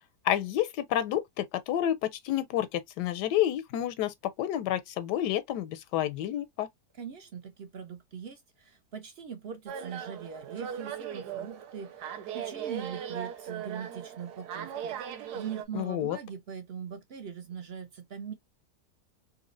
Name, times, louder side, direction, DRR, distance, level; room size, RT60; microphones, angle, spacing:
voice 1, 0.2-6.7 15.7-16.2, left 11 dB, 85° left, 1.2 m, -29 dB
voice 2, 6.9-18.3, right 7 dB, 55° right, 0.7 m, -41 dB
sound 1, 9.7-15.7, right 9 dB, 80° right, 1.3 m, -38 dB
4.2 x 2.7 x 2.4 m
omnidirectional pair, 1.7 m